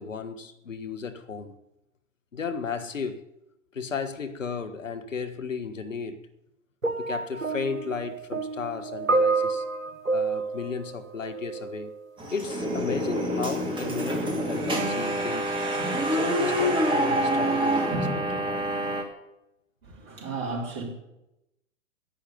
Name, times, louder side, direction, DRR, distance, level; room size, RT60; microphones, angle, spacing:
voice 1, 0.0-1.6 2.3-3.2 3.7-6.3 7.0-9.6 10.1-11.9 12.3-15.6 16.1-18.7, left 5 dB, 75° left, 1.4 m, -34 dB
sound 1, 6.8-11.9 12.8-13.0, right 3 dB, 90° right, 1.0 m, -29 dB
sound 2, 12.2-19.0, equal, 10° right, 2.3 m, -26 dB
voice 2, 19.8-20.8, right 3 dB, 30° right, 4.4 m, -34 dB
10.5 x 8.5 x 9.4 m
figure-of-eight pair, 110°, 39 cm